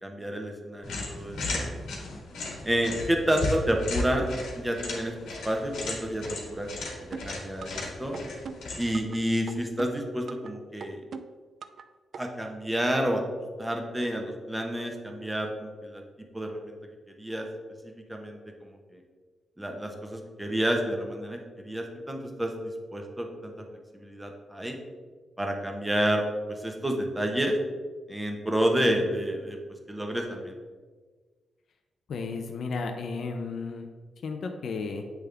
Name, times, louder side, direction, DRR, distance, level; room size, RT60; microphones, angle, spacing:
voice 1, 0.0-1.7 2.6-5.1 5.4-8.2 8.8-11.0 12.1-13.2 13.6-16.0 16.3-16.8 17.2-17.5 17.8-19.0 19.6-22.5 22.9-23.5 23.9-24.8 25.4-26.2 26.6-27.6 28.1-29.6 29.9-30.5, right 1 dB, 10° right, 2 dB, 1.0 m, -29 dB
sound 1, 0.8-9.1, left 2 dB, 85° left, 1.3 m, -35 dB
sound 2, 7.1-7.8 8.1-9.2 9.5-10.5 10.8-11.8 12.1-12.2, right 6 dB, 65° right, 0.3 m, -41 dB
voice 2, 32.1-33.9 34.2-35.0, left 4 dB, 70° left, 4 dB, 0.5 m, -33 dB
8.0 x 3.5 x 3.4 m, 1.4 s
cardioid pair, 75°, 0 cm